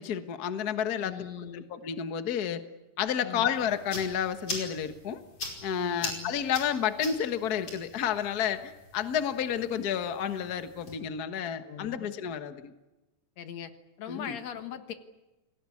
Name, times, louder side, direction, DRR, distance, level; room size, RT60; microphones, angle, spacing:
voice 1, 0.0-1.1 1.5-2.6 3.0-5.2 5.6-12.7 14.1-14.4, left 8 dB, 80° left, 9 dB, 0.8 m, -31 dB
voice 2, 1.0-1.7 3.2-3.5 5.8-6.3 11.6-12.1 13.4-13.7 14.0-14.9, left 9 dB, 60° left, 9 dB, 2.4 m, -40 dB
sound 1, 3.5-10.9, left 2 dB, 40° left, 6.0 m, -42 dB
28.5 x 19.5 x 8.5 m, 1.0 s
omnidirectional pair, 4.0 m